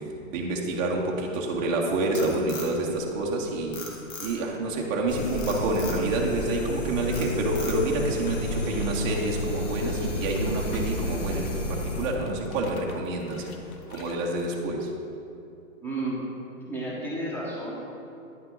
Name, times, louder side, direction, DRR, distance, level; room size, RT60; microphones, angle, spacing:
voice 1, 0.3-3.8 4.2-13.6 13.9-14.9, right 2 dB, 15° right, -1 dB, 0.6 m, -28 dB
Frog, 1.8-3.4 3.7-4.6 5.4-6.0 6.5-6.8 7.1-8.0, left 4 dB, 30° left, 1.3 m, -39 dB
sound 1, 5.1-12.1, left 1 dB, 50° left, 1.7 m, -31 dB
sound 2, 8.0-14.6, left 1 dB, 80° left, 0.9 m, -43 dB
voice 2, 15.8-16.2 16.7-17.8, right 2 dB, 5° left, -5 dB, 1.2 m, -32 dB
9.2 x 5.6 x 3.8 m, 2.6 s
hypercardioid pair, 140°, 42 cm